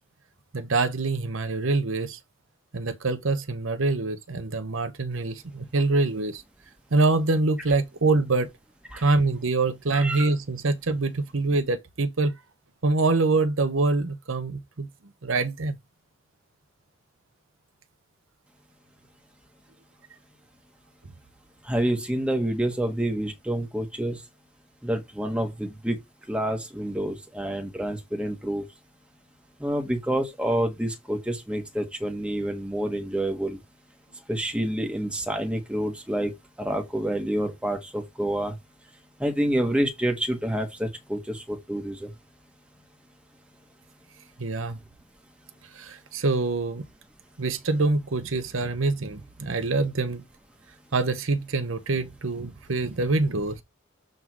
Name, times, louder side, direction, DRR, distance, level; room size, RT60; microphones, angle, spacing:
voice 1, 0.5-2.2 2.7-6.4 6.9-8.5 9.0-12.3 12.8-14.9 15.2-15.8 44.4-44.8 45.7-46.8 47.4-50.2 50.9-53.6, right 3 dB, 70° right, 0.8 m, -25 dB
voice 2, 9.9-10.3 21.7-24.2 24.8-26.0 26.3-28.6 29.6-33.6 34.3-36.3 36.6-38.5 39.2-42.1, right 1 dB, 5° right, 1.5 m, -28 dB
7.6 x 3.7 x 4.7 m
head